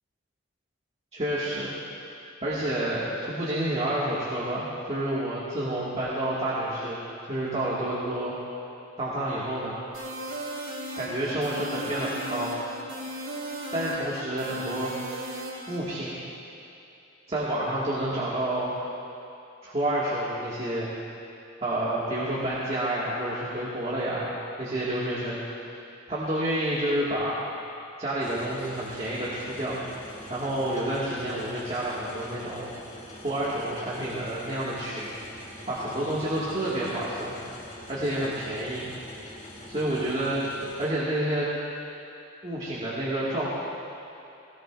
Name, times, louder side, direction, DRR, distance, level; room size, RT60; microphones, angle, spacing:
voice 1, 1.1-1.8 2.4-7.0 7.3-8.3 9.0-9.8 11.0-12.5 13.7-15.1 15.7-16.2 17.3-18.7 19.6-20.9 21.6-25.7 26.1-27.4 28.0-29.8 30.3-32.7 33.2-35.1 35.7-37.3 37.9-38.9 39.7-40.4 40.8-41.5 42.4-43.5, right 1 dB, 30° right, -8 dB, 2.0 m, -29 dB
sound 1, 9.9-15.8, right 1 dB, 65° right, 3.6 m, -36 dB
sound 2, 28.2-40.9, left 1 dB, 40° left, 2.6 m, -45 dB
19.5 x 18.5 x 2.6 m, 2.8 s
head